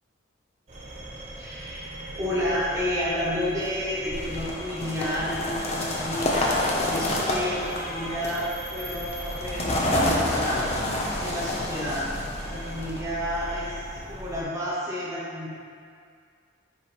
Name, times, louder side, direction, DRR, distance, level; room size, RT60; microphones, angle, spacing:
sound 1, 0.7-14.4, right 1 dB, 35° right, 1.0 m, -39 dB
voice 1, 1.3-10.6 11.2-12.1 12.4-15.5, left 1 dB, 15° right, -9 dB, 1.4 m, -31 dB
sound 2, 4.1-13.0, left 1 dB, 30° left, 0.6 m, -28 dB
7.3 x 3.1 x 4.5 m, 2.2 s
head